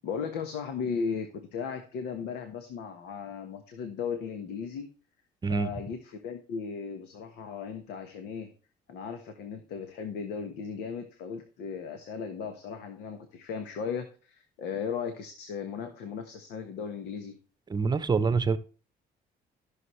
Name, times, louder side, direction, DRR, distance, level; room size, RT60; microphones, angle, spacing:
voice 1, 0.0-4.9 5.5-8.5 8.9-17.4, left 6 dB, 85° left, 1.3 m, -36 dB
voice 2, 17.7-18.6, right 5 dB, 25° right, 0.8 m, -25 dB
14.0 x 6.4 x 3.2 m
cardioid pair, 110°, 17 cm